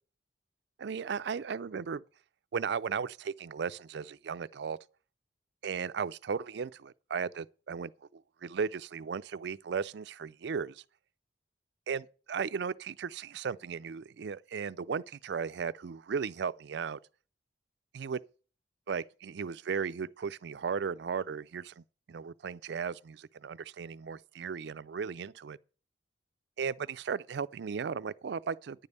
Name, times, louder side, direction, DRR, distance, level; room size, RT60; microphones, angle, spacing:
voice 1, 0.8-2.0 2.5-4.8 5.6-10.8 11.9-17.0 17.9-18.2 18.9-21.8 22.1-25.6 26.6-28.9, right 6 dB, 60° right, 0.4 m, -36 dB
9.9 x 5.3 x 8.0 m
head